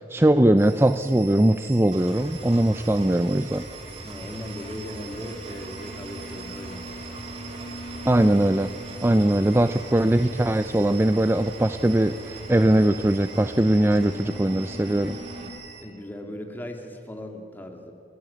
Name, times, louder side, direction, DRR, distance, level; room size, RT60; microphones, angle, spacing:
voice 1, 0.0-3.6 8.0-8.7 9.0-15.2, right 1 dB, 15° right, 10 dB, 0.4 m, -20 dB
sound 1, 0.6-15.8, right 7 dB, 90° right, 3.8 m, -45 dB
Engine, 1.9-15.5, right 1 dB, 35° right, 3.1 m, -40 dB
voice 2, 4.0-7.1 15.8-17.9, left 1 dB, 10° left, 3 dB, 2.2 m, -38 dB
29.0 x 16.0 x 8.5 m, 2.7 s
head